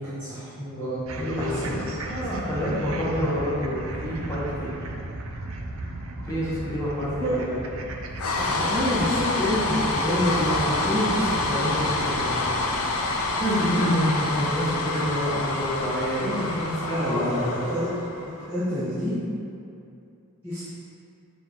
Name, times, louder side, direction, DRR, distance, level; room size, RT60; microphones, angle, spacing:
voice 1, 0.0-1.9 7.2-7.4 8.4-12.5 16.8-17.9 18.5-19.2 20.4-20.6, equal, 10° right, -16 dB, 1.4 m, -27 dB
sound 1, 1.1-16.4, right 2 dB, 70° right, 0.6 m, -37 dB
voice 2, 1.4-4.7 6.2-7.6 13.0-17.3, equal, 15° left, -9 dB, 1.3 m, -27 dB
sound 2, 8.2-18.4, left 2 dB, 80° left, 0.6 m, -27 dB
7.3 x 2.7 x 5.9 m, 2.6 s
head